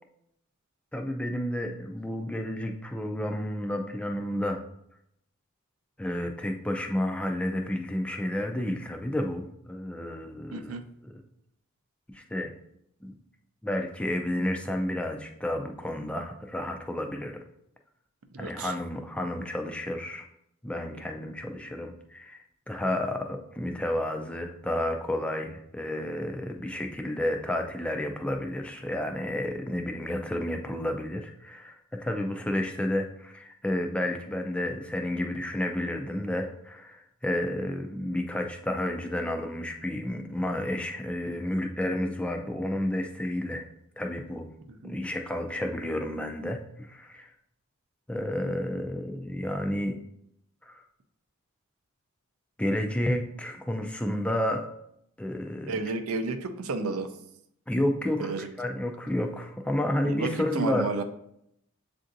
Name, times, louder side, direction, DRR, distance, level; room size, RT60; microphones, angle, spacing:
voice 1, 0.9-4.6 6.0-10.8 11.0-11.1 12.1-12.5 13.0-13.2 13.6-17.4 18.4-20.2 20.6-43.7 44.0-44.5 44.8-47.3 48.1-49.9 50.6-50.8 52.6-54.7 55.2-55.8 57.7-58.3 58.6-60.9, left 1 dB, 5° left, 3 dB, 0.3 m, -31 dB
voice 2, 10.5-10.8 18.3-18.7 44.7-45.0 55.7-57.1 58.2-58.5 60.0-61.0, right 3 dB, 75° right, 7 dB, 0.5 m, -32 dB
7.6 x 2.6 x 2.6 m, 0.74 s
head